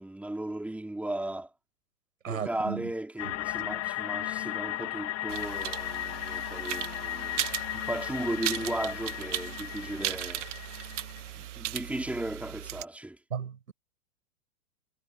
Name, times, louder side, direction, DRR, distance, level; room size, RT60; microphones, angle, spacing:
voice 1, 0.0-1.5 2.3-10.5 11.4-13.2, right 1 dB, 5° right, 4.0 m, -36 dB
voice 2, 2.2-2.9 3.3-3.4 13.3-13.7, right 7 dB, 75° right, 7.1 m, -35 dB
sound 1, 3.2-11.2, left 15 dB, 35° left, 2.7 m, -36 dB
sound 2, 5.3-12.8, right 13 dB, 60° right, 2.2 m, -37 dB
hypercardioid pair, 110°, 41 cm